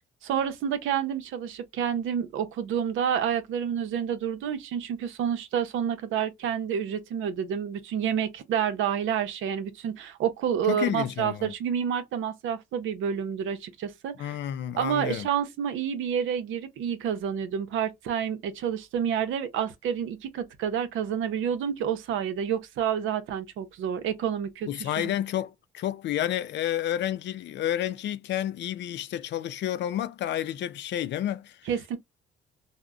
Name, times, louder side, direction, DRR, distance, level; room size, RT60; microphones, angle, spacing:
voice 1, 0.2-14.4 14.8-25.1 31.7-32.0, right 8 dB, 85° right, 0.6 m, -29 dB
voice 2, 10.7-11.5 14.2-15.3 24.7-31.6, left 11 dB, 65° left, 0.4 m, -30 dB
3.7 x 2.1 x 2.2 m
cardioid pair, 90°, 20 cm